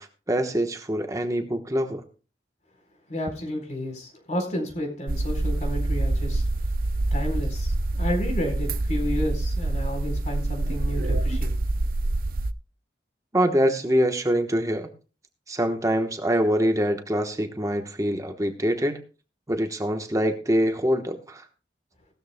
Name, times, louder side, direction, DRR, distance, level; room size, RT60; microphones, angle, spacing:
voice 1, 0.0-2.0 13.3-14.9 15.5-19.0 19.5-21.4, equal, 20° right, 1.1 m, -24 dB
voice 2, 3.1-6.4 7.1-11.5, left 1 dB, 40° left, 4.2 m, -31 dB
sound 1, 5.1-12.5, right 2 dB, 55° right, 0.5 m, -26 dB
17.5 x 13.0 x 2.2 m
head